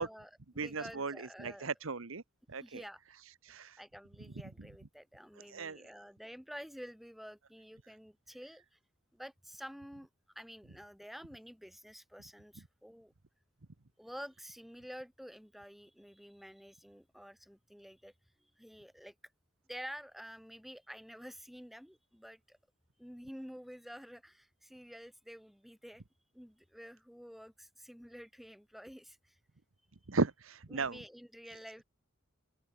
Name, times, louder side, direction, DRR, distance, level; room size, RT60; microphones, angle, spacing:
voice 1, 0.0-1.7 2.6-3.0 3.8-8.8 9.1-10.1 10.3-13.1 14.0-18.1 18.4-19.1 19.7-22.6 23.0-26.0 26.3-29.4 30.7-31.8, equal, ahead, 8.0 m, -50 dB
voice 2, 0.6-2.2 2.5-2.8 3.2-3.8 5.5-5.8 30.1-31.0, right 4 dB, 75° right, 1.1 m, -36 dB
open air
head